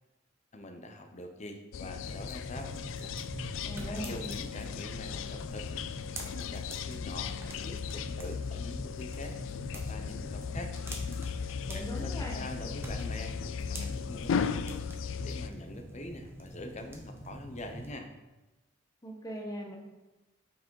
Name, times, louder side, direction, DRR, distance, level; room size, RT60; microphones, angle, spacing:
voice 1, 0.5-2.7 3.4-5.9 6.2-9.4 9.7-10.7 11.3-13.3 13.7-18.1, left 1 dB, 35° left, 5 dB, 0.7 m, -44 dB
sound 1, 1.7-15.5, left 6 dB, 65° left, 0.3 m, -37 dB
sound 2, 2.0-17.9, right 1 dB, 10° right, 0.7 m, -45 dB
voice 2, 3.6-4.2 11.7-12.4 19.0-19.8, equal, 15° left, 0 dB, 1.0 m, -39 dB
5.9 x 4.7 x 4.7 m, 1.1 s
head